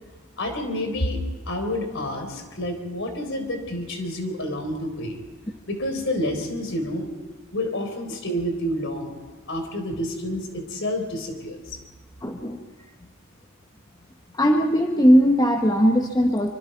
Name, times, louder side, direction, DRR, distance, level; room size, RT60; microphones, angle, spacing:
voice 1, 0.4-5.2 5.7-7.1 7.5-11.8, left 1 dB, 60° left, 5 dB, 4.2 m, -29 dB
voice 2, 12.2-12.6 14.3-16.5, equal, 20° left, 3 dB, 1.1 m, -19 dB
25.0 x 25.0 x 4.6 m, 1.2 s
head